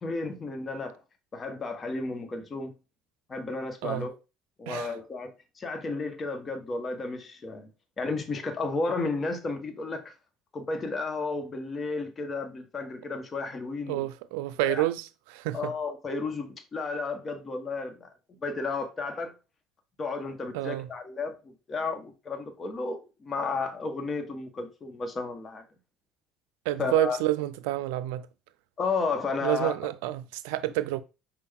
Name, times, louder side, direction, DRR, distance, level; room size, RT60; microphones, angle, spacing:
voice 1, 0.0-1.0 1.3-2.7 3.3-4.1 4.6-7.7 8.0-10.1 10.5-14.1 14.6-14.9 15.5-18.1 18.4-19.3 20.0-25.6 26.8-27.2 28.8-29.7, left 3 dB, 35° left, 1.2 m, -33 dB
voice 2, 13.9-15.7 20.5-20.9 26.7-28.3 29.4-31.0, right 16 dB, 85° right, 0.4 m, -29 dB
5.4 x 2.4 x 3.6 m
supercardioid pair, 85°, 0 cm